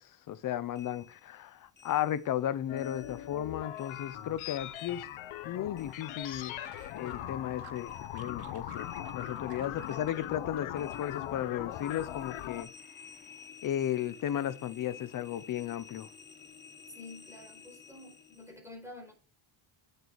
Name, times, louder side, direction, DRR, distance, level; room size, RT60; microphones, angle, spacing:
voice 1, 0.0-5.1 5.4-6.6 6.9-12.7 13.6-16.1, left 11 dB, 40° left, 0.7 m, -35 dB
sound 1, 0.8-3.5 3.7-6.5 6.7-18.5, left 6 dB, 20° left, 1.0 m, -54 dB
sound 2, 2.7-12.6, left 13 dB, 75° left, 0.9 m, -40 dB
sound 3, 5.8-7.3 7.6-10.3 10.6-11.3 11.6-12.1, right 10 dB, 50° right, 1.1 m, -54 dB
voice 2, 17.0-19.1, left 2 dB, 5° right, 4.4 m, -49 dB
8.8 x 6.8 x 4.6 m
cardioid pair, 135°, 48 cm